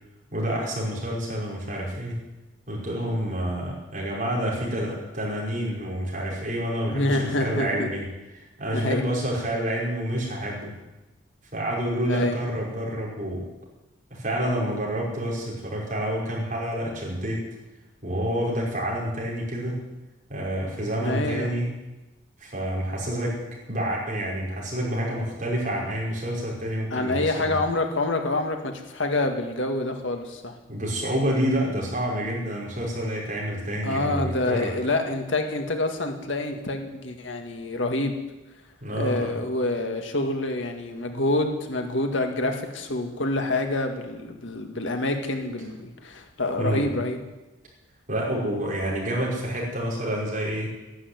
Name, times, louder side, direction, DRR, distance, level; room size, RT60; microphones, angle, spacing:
voice 1, 0.3-2.1 2.7-8.0 8.3-10.7 11.5-13.5 14.1-17.4 18.0-19.8 20.3-21.7 22.4-23.3 23.7-27.6 30.7-34.7 38.8-39.4 46.6-46.8 48.1-50.7, equal, 40° right, -3 dB, 5.5 m, -28 dB
voice 2, 6.9-7.9 8.7-9.0 12.1-12.4 21.0-21.6 26.9-30.5 33.8-38.2 38.9-47.2, left 2 dB, 75° left, 4 dB, 2.0 m, -27 dB
13.0 x 11.5 x 9.6 m, 1.1 s
head